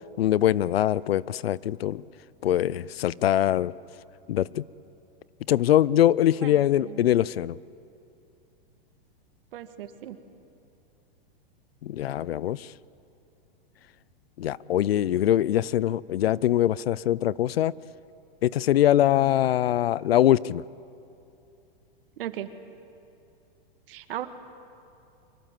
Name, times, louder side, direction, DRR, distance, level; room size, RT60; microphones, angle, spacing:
voice 1, 0.2-2.0 2.4-3.7 4.3-4.6 5.5-7.6 11.8-12.7 14.4-17.7 18.4-20.6, left 12 dB, 85° left, 22 dB, 0.6 m, -23 dB
voice 2, 6.4-7.1 9.5-10.2 22.2-22.5 23.9-24.3, right 12 dB, 70° right, 9 dB, 1.9 m, -37 dB
24.5 x 24.5 x 7.6 m, 2.7 s
hypercardioid pair, 130°, 29 cm